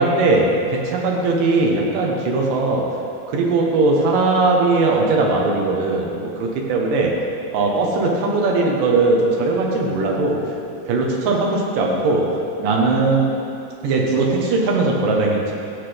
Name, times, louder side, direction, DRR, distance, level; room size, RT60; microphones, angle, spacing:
voice 1, 0.0-2.8 3.3-7.1 7.5-10.4 10.9-12.2 12.6-13.3 13.8-15.5, right 3 dB, 80° right, -1 dB, 2.8 m, -19 dB
14.0 x 7.9 x 3.4 m, 2.6 s
omnidirectional pair, 3.8 m